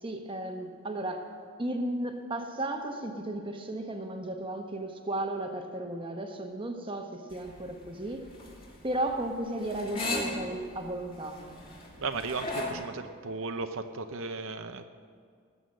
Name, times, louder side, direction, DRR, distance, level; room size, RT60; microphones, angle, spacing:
voice 1, 0.0-1.2 1.6-8.3 8.8-11.4, right 1 dB, 25° right, 3 dB, 1.1 m, -34 dB
sound 1, 7.3-12.7, left 2 dB, 25° left, 2.6 m, -37 dB
voice 2, 12.0-14.8, right 3 dB, 60° right, 8 dB, 0.7 m, -35 dB
19.0 x 7.0 x 7.7 m, 2.1 s
head